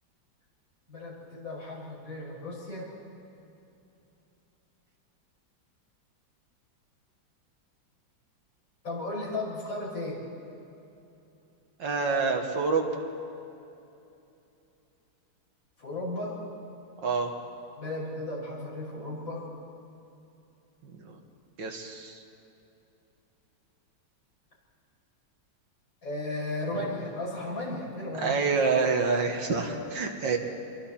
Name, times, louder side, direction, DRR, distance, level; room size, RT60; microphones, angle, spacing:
voice 1, 0.9-2.9 8.8-10.2 15.8-16.4 17.8-19.4 26.0-28.3, left 2 dB, 70° left, -5 dB, 6.7 m, -35 dB
voice 2, 11.8-12.9 17.0-17.3 20.8-21.2 21.6-22.2 28.2-30.4, right 4 dB, 70° right, 3 dB, 2.2 m, -27 dB
27.0 x 23.0 x 4.4 m, 2.8 s
omnidirectional pair, 2.1 m